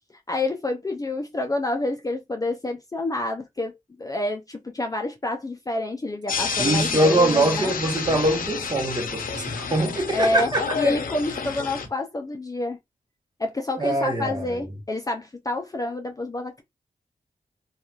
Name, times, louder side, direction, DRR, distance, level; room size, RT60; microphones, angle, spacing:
voice 1, 0.3-7.7 10.1-10.5 10.8-12.8 13.4-16.6, left 2 dB, 25° left, 0.5 m, -28 dB
sound 1, 6.3-11.9, left 5 dB, 75° left, 0.6 m, -29 dB
voice 2, 6.6-10.7 13.8-14.6, right 1 dB, 30° right, 1.0 m, -23 dB
2.8 x 2.3 x 2.3 m
cardioid pair, 50°, 14 cm